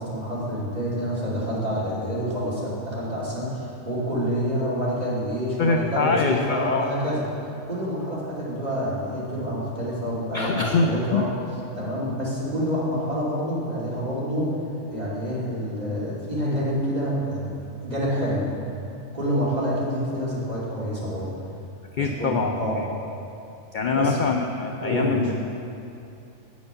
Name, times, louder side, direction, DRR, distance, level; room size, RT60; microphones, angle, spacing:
voice 1, 0.0-7.2 7.7-11.2 11.7-14.5 14.9-18.5 19.1-21.3 22.0-22.8 23.9-24.2 24.8-25.3, equal, 30° right, -8 dB, 2.7 m, -27 dB
voice 2, 5.6-6.9 10.3-11.2 21.9-22.5 23.7-25.3, left 4 dB, 70° left, 3 dB, 0.4 m, -24 dB
8.7 x 6.2 x 6.9 m, 2.7 s
omnidirectional pair, 1.4 m